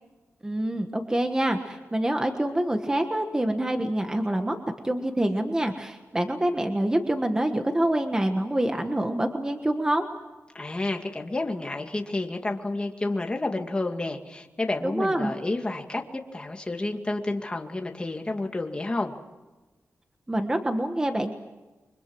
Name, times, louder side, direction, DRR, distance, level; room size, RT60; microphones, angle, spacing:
voice 1, 0.4-4.6 4.8-10.0 14.8-15.3 20.3-21.3, right 1 dB, 15° right, 5 dB, 1.4 m, -26 dB
voice 2, 10.5-19.1, left 2 dB, 20° left, 3 dB, 2.3 m, -30 dB
29.5 x 24.5 x 6.2 m, 1.2 s
wide cardioid pair, 170°, 5 cm